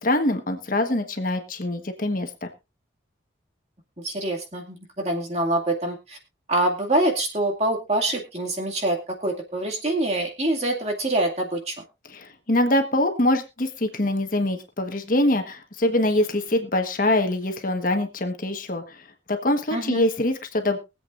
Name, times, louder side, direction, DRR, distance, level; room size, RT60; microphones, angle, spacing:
voice 1, 0.0-2.3 12.1-19.0 19.3-20.8, left 1 dB, 45° left, 5 dB, 1.3 m, -24 dB
voice 2, 4.0-6.2 6.5-11.8 19.7-20.0, right 1 dB, 35° right, 1 dB, 2.3 m, -25 dB
23.0 x 8.1 x 2.6 m, 0.26 s
head